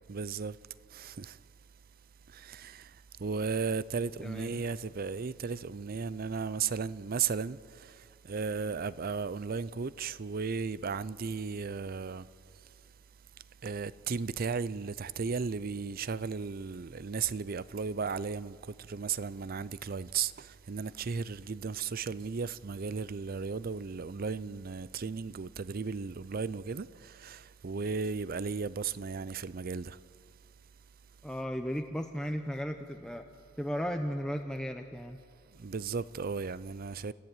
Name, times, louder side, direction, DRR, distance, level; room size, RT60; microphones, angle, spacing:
voice 1, 0.1-0.6 0.9-1.4 2.3-12.3 13.6-30.0 35.5-37.1, right 5 dB, 45° right, 0.5 m, -35 dB
voice 2, 4.2-4.6 31.2-33.2 33.6-35.2, equal, 5° left, 0.7 m, -35 dB
28.5 x 14.5 x 9.0 m
head